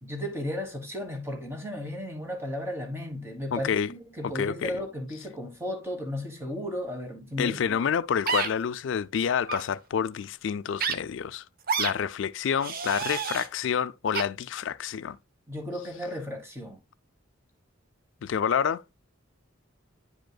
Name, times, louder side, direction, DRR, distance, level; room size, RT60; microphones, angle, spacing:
voice 1, 0.0-7.8 15.5-16.8, left 1 dB, 10° right, 1.4 m, -35 dB
voice 2, 3.5-3.9 4.2-4.8 7.4-11.4 11.8-15.2 18.2-18.8, left 7 dB, 65° left, 0.3 m, -28 dB
sound 1, 8.3-8.5 9.4-9.6 10.8-10.9 11.7-11.9 12.6-13.5 14.1-14.2, right 6 dB, 45° right, 0.7 m, -28 dB
9.9 x 5.1 x 2.2 m
head